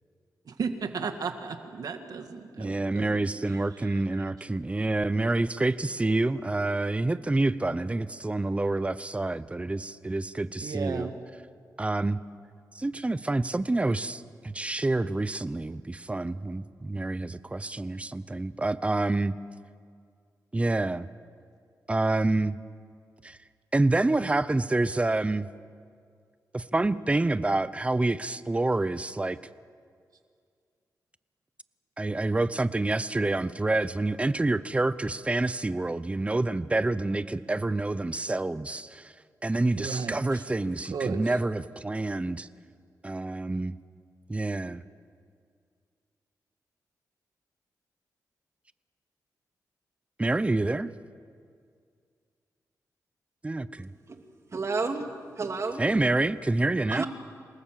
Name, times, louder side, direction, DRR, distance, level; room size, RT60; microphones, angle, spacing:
voice 1, 0.5-4.2 10.6-11.2 39.8-40.4 40.9-41.3, right 5 dB, 70° right, 7 dB, 1.9 m, -35 dB
voice 2, 2.6-11.1 11.8-12.2 12.7-19.3 20.5-21.1 21.9-22.6 23.2-23.4 23.7-25.5 26.5-29.4 32.0-39.1 39.4-42.5 43.0-43.8 44.3-44.8 50.2-50.9 53.4-53.9 55.8-57.0, right 2 dB, 20° right, 15 dB, 0.8 m, -27 dB
voice 3, 54.1-56.0 56.9-57.1, right 4 dB, 45° right, 5 dB, 2.4 m, -32 dB
27.5 x 19.0 x 7.6 m, 2.2 s
cardioid pair, 85°, 7 cm